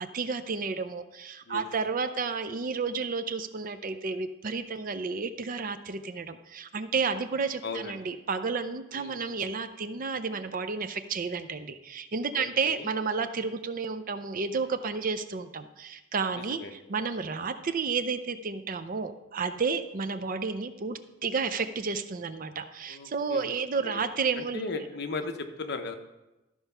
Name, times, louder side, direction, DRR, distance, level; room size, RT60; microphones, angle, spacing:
voice 1, 0.0-24.6, right 5 dB, 40° right, 9 dB, 0.5 m, -31 dB
voice 2, 7.6-8.0 8.9-9.2 12.3-12.9 16.3-16.8 22.9-24.1 24.3-25.9, left 3 dB, 55° left, 6 dB, 0.8 m, -37 dB
12.5 x 4.6 x 5.5 m, 1.0 s
head